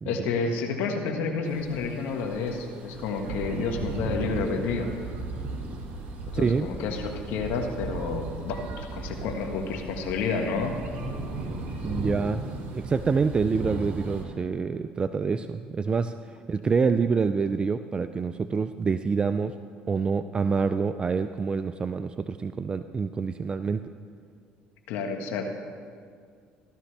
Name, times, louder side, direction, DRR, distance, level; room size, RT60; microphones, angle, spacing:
voice 1, 0.0-4.9 6.3-10.8 24.9-25.4, left 4 dB, 75° left, 4 dB, 1.4 m, -30 dB
sound 1, 1.5-14.2, right 3 dB, 60° right, 2.2 m, -36 dB
voice 2, 6.3-6.7 11.8-12.4 12.7-19.5 19.9-23.8, right 5 dB, 30° right, 10 dB, 0.4 m, -27 dB
16.0 x 12.5 x 3.4 m, 2.1 s
supercardioid pair, 85°, 3 cm